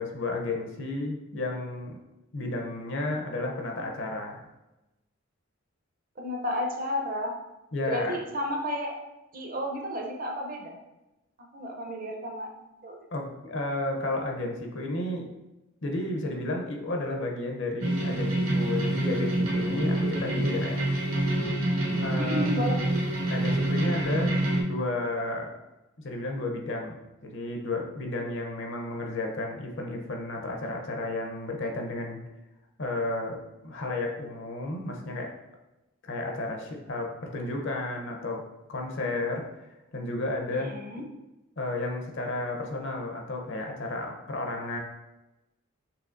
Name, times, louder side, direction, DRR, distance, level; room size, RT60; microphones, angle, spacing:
voice 1, 0.0-2.0 2.3-4.4 7.7-8.2 13.1-15.3 15.8-20.8 22.0-22.6 23.3-24.4 24.7-25.5 26.0-27.0 27.2-32.2 32.8-35.3 36.0-38.4 38.7-39.5 39.9-40.7 41.6-44.8, left 2 dB, 60° left, 2 dB, 0.7 m, -32 dB
voice 2, 3.2-4.0 6.2-7.3 7.9-9.0 9.3-10.8 11.5-12.9 22.2-22.8 40.5-41.0, equal, 40° right, 2 dB, 0.7 m, -33 dB
sound 1, 17.8-24.6, right 1 dB, 80° right, 1.2 m, -27 dB
5.8 x 3.2 x 2.6 m, 0.99 s
head